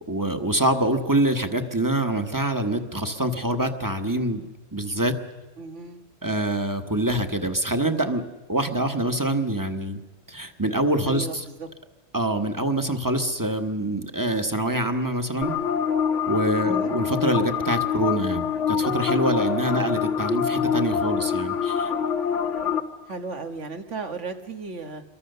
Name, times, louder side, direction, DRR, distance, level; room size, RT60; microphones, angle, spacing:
voice 1, 0.1-4.4 4.7-5.1 6.2-8.2 8.5-10.0 10.3-11.4 12.1-15.5 16.3-21.9, right 1 dB, 15° right, 7 dB, 1.3 m, -25 dB
voice 2, 5.6-6.0 11.0-11.7 16.6-16.9 19.7-20.0 23.1-25.0, right 4 dB, 90° right, 6 dB, 1.9 m, -35 dB
sound 1, 15.4-22.8, left 7 dB, 85° left, 1.7 m, -25 dB
27.5 x 23.0 x 6.8 m, 1.2 s
omnidirectional pair, 1.2 m